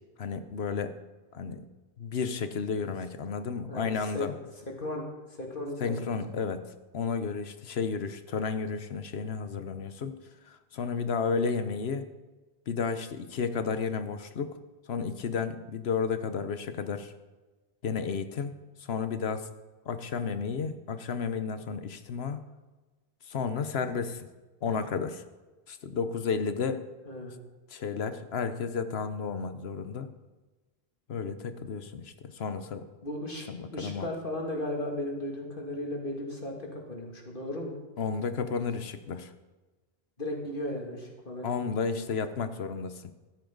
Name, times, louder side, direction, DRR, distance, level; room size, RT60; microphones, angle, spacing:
voice 1, 0.2-0.9 1.3-1.6 2.0-4.3 5.8-6.6 6.9-10.2 10.5-12.0 12.7-14.6 14.9-17.1 17.8-18.5 18.8-19.5 19.9-22.4 23.3-24.3 24.6-25.2 25.7-26.8 27.7-30.1 31.1-32.9 33.5-34.1 38.0-39.3 41.4-43.1, left 5 dB, 85° left, 10 dB, 1.1 m, -32 dB
voice 2, 3.7-4.3 4.6-5.1 5.4-6.4 27.1-27.3 33.0-33.4 33.7-37.7 40.2-41.5 42.0-42.1, left 1 dB, 60° left, 0 dB, 2.7 m, -36 dB
15.5 x 14.0 x 3.9 m, 1.2 s
omnidirectional pair, 1.0 m